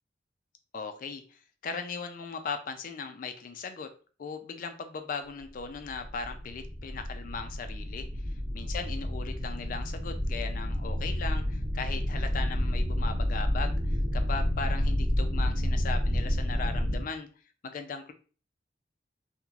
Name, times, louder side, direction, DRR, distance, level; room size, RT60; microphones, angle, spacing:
voice 1, 0.7-3.9 4.2-8.0 8.5-17.3 17.6-18.1, left 5 dB, 50° left, 7 dB, 0.3 m, -38 dB
sound 1, 5.8-17.0, equal, 45° right, 1.4 m, -30 dB
2.9 x 2.9 x 2.3 m, 0.39 s
head